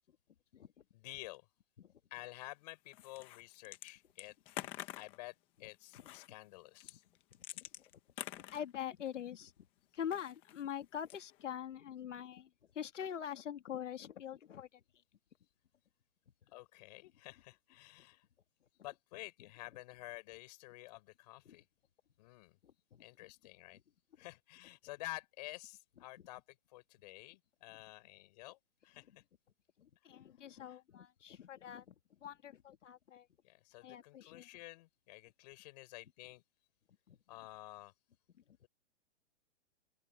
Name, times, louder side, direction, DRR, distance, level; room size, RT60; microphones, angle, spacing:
voice 1, 0.9-1.5 2.1-4.7 5.0-7.0 16.5-18.2 18.8-21.7 22.2-22.6 23.0-23.8 24.2-29.2 30.5-30.8 33.4-36.4 37.3-37.9, left 20 dB, 35° left, 6.9 m, -51 dB
sound 1, 2.9-3.9 4.2-5.2 5.9-6.3 6.8-9.2 10.0-10.6 11.0-11.4, left 16 dB, 15° left, 0.9 m, -47 dB
voice 2, 8.3-9.5 9.9-14.8 16.4-16.5 21.5-21.6 22.6-23.1 27.7-27.8 29.1-29.2 29.8-33.3 33.8-34.5 37.1-37.2 38.3-38.6, left 9 dB, 90° left, 2.1 m, -44 dB
open air
hypercardioid pair, 170°, 36 cm